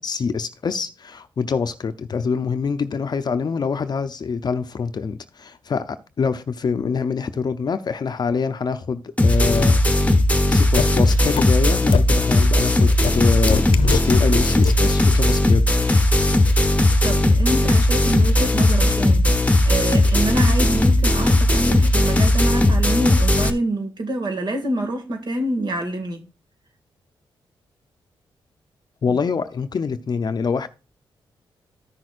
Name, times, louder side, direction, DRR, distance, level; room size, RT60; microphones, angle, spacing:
voice 1, 0.0-9.8 10.5-16.1 29.0-30.7, left 5 dB, 50° left, 0.6 m, -25 dB
sound 1, 9.2-23.5, left 1 dB, 15° left, 1.1 m, -17 dB
sound 2, 10.8-10.9 11.4-11.5 11.9-12.0 13.0-13.1 13.5-14.2 14.6-14.7, left 8 dB, 80° left, 0.7 m, -21 dB
voice 2, 17.0-26.2 29.1-29.2, right 1 dB, 50° right, 2.1 m, -26 dB
14.0 x 6.1 x 2.5 m
cardioid pair, 85°, 9 cm